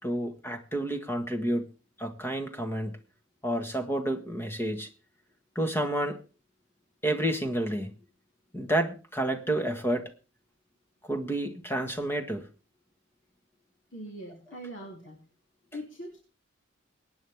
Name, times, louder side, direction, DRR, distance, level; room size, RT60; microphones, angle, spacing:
voice 1, 0.0-1.7 2.0-3.0 3.4-4.9 5.5-6.2 7.0-7.9 8.5-10.1 11.1-12.5, right 1 dB, 10° left, 6 dB, 1.6 m, -30 dB
voice 2, 13.9-15.2 15.7-16.2, equal, 70° left, 0 dB, 3.1 m, -41 dB
23.0 x 9.7 x 3.6 m, 0.36 s
head